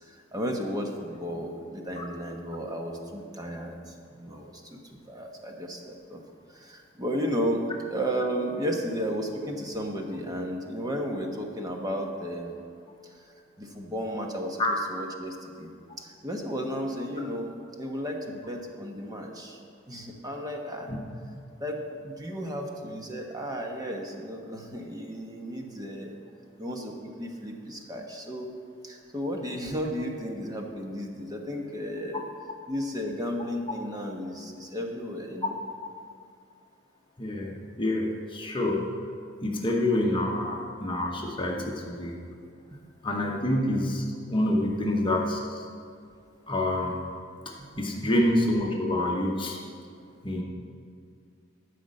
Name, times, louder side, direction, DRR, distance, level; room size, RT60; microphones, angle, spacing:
voice 1, 0.1-6.2 6.5-7.6 7.9-12.6 13.6-14.6 14.9-15.7 16.0-19.6 19.9-20.9 21.6-26.1 26.6-28.5 28.8-32.2 32.7-35.5 47.6-48.1, equal, 20° right, 1 dB, 1.1 m, -34 dB
voice 2, 37.2-38.8 39.4-42.2 43.0-45.6 46.5-47.0 47.8-49.6 50.2-50.4, left 1 dB, 25° left, -1 dB, 1.0 m, -27 dB
12.5 x 5.1 x 7.7 m, 2.3 s
head